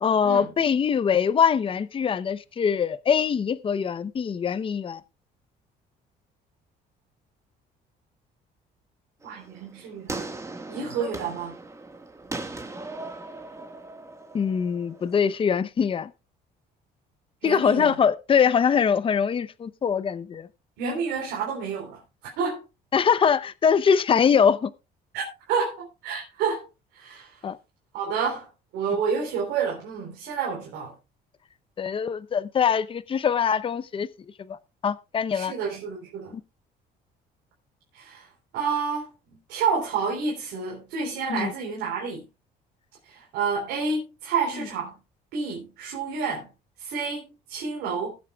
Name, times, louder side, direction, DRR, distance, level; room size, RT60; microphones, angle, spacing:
voice 1, 0.0-5.0 14.3-16.1 17.4-20.5 22.9-24.7 27.4-27.6 31.8-34.1 34.4-34.6 34.8-35.5 36.3-36.4 41.3-41.5 44.5-44.7, left 7 dB, 30° left, 0.7 m, -23 dB
sound 1, 9.2-15.4, right 2 dB, 15° right, 1.6 m, -39 dB
voice 2, 9.2-10.3 10.7-11.6 17.4-17.9 20.8-22.0 22.4-22.6 25.1-26.6 26.9-27.3 27.9-28.5 28.7-30.9 35.3-36.3 37.9-38.2 38.5-39.1 39.5-42.2 43.1-44.9 45.3-46.5 46.8-48.1, right 5 dB, 85° right, 3.8 m, -29 dB
21.0 x 8.6 x 2.3 m
cardioid pair, 110°, 17 cm